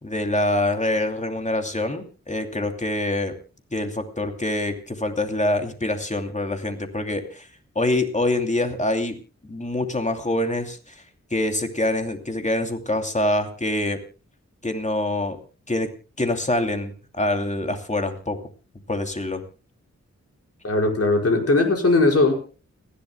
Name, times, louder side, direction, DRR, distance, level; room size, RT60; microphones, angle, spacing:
voice 1, 0.0-3.3 3.7-7.5 7.7-9.2 9.5-10.9 11.3-14.0 14.6-15.4 15.7-15.9 16.2-18.4 18.9-19.4, left 1 dB, 25° left, 5 dB, 2.7 m, -25 dB
voice 2, 20.6-22.3, left 2 dB, 55° left, 1 dB, 5.0 m, -19 dB
30.0 x 11.5 x 2.2 m, 0.34 s
wide cardioid pair, 75°, 29 cm